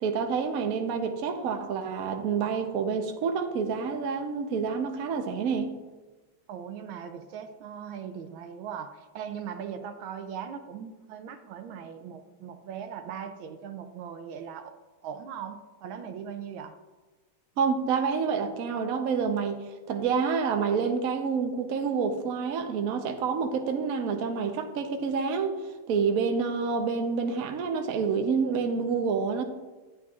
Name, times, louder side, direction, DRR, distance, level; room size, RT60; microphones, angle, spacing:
voice 1, 0.0-5.7 17.6-19.6 19.9-25.6 25.9-29.4, right 5 dB, 60° right, 5 dB, 1.0 m, -28 dB
voice 2, 6.5-16.8, right 8 dB, 80° right, 9 dB, 1.4 m, -39 dB
11.0 x 9.4 x 2.4 m, 1.2 s
omnidirectional pair, 2.3 m